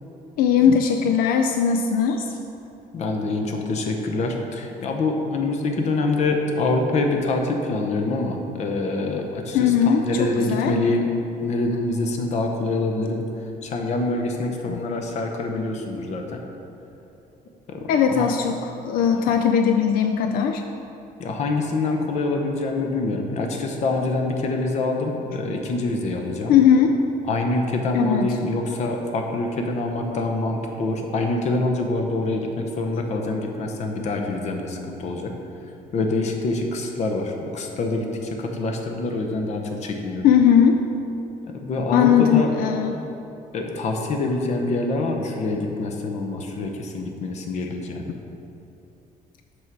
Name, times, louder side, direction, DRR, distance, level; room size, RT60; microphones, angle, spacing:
voice 1, 0.4-2.4 9.5-10.0 10.5-10.7 17.9-20.6 26.5-26.9 27.9-28.4 40.2-40.8 41.9-43.0, left 8 dB, 85° left, 5 dB, 0.4 m, -19 dB
voice 2, 2.9-11.1 11.4-16.4 17.7-18.3 21.2-26.6 27.2-35.3 35.9-40.3 41.5-42.5 43.5-48.1, left 2 dB, 50° left, 2 dB, 0.8 m, -25 dB
6.3 x 6.2 x 4.6 m, 2.9 s
cardioid pair, 155°, 15 cm